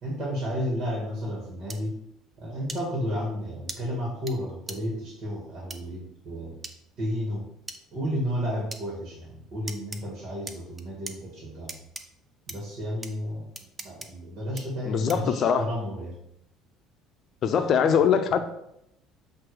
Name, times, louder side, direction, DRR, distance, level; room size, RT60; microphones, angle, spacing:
voice 1, 0.0-2.0 2.4-6.6 7.0-7.5 7.9-11.8 12.5-13.5 13.8-16.2, equal, 55° right, -2 dB, 2.2 m, -32 dB
sound 1, 1.7-1.8 2.7-2.8 3.7-3.8 4.3-4.4 4.7-4.8 5.7-5.8 6.6-6.7 7.7-7.8 8.7-8.8 9.7-10.0 10.5-11.1 11.7-12.0 12.5-12.6 13.0-13.1 13.5-14.1 14.6-14.7 15.1-15.3, right 2 dB, 20° right, 0.7 m, -38 dB
voice 2, 14.9-15.7 17.4-18.5, left 7 dB, 55° left, 8 dB, 0.7 m, -22 dB
7.6 x 2.8 x 5.0 m, 0.79 s
supercardioid pair, 90°, 0 cm